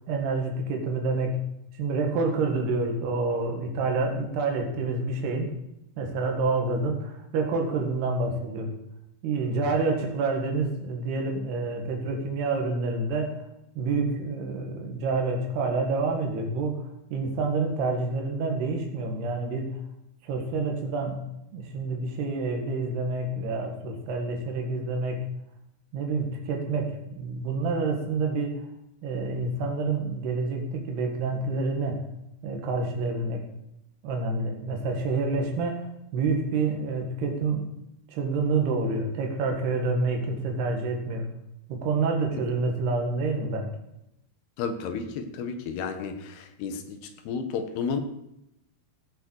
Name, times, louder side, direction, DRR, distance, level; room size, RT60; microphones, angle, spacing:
voice 1, 0.1-1.4 1.8-5.5 6.0-8.7 9.2-13.4 13.8-16.8 17.1-19.8 20.2-21.2 21.5-25.3 25.9-28.5 29.0-32.0 32.4-33.4 34.0-37.7 38.1-41.3 41.7-43.7, right 3 dB, 90° right, 2 dB, 3.9 m, -28 dB
voice 2, 44.6-48.0, left 5 dB, 85° left, 7 dB, 3.3 m, -32 dB
16.5 x 7.1 x 6.4 m, 0.84 s
omnidirectional pair, 4.5 m